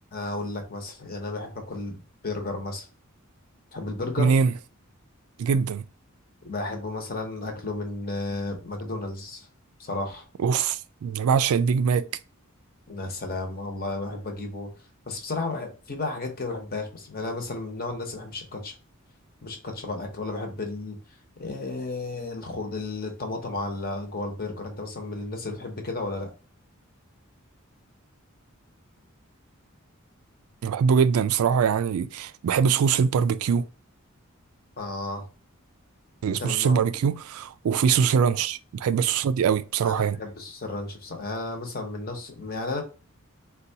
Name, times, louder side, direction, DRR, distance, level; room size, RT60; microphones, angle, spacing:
voice 1, 0.1-2.9 3.7-4.4 6.4-9.5 9.8-10.2 12.9-14.7 15.1-18.7 19.4-21.0 21.4-26.3 34.8-35.3 36.3-36.9 39.8-42.8, left 2 dB, 45° left, 0.8 m, -33 dB
voice 2, 4.2-4.5 5.4-5.8 10.4-12.0 30.6-33.7 36.2-40.2, right 6 dB, 85° right, 0.3 m, -23 dB
4.0 x 2.2 x 2.7 m
head